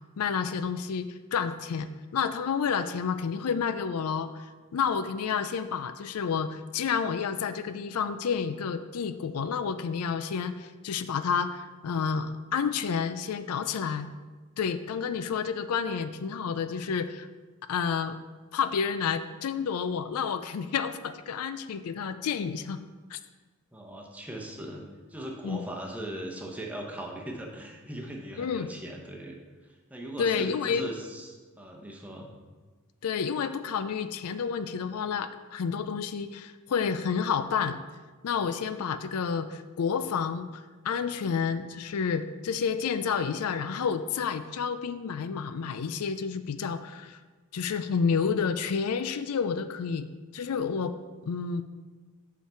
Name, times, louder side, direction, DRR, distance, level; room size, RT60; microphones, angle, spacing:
voice 1, 0.2-4.4 4.7-14.1 14.6-17.3 17.7-18.2 18.5-22.8 23.1-23.2 25.4-25.6 28.4-28.7 30.2-30.9 33.0-37.8 38.2-47.2 47.5-50.1 50.3-50.9 51.2-51.6, left 6 dB, 85° left, 11 dB, 0.4 m, -30 dB
voice 2, 23.7-29.4 29.9-32.3, right 1 dB, 5° right, 0 dB, 0.8 m, -39 dB
6.5 x 5.8 x 4.4 m, 1.3 s
head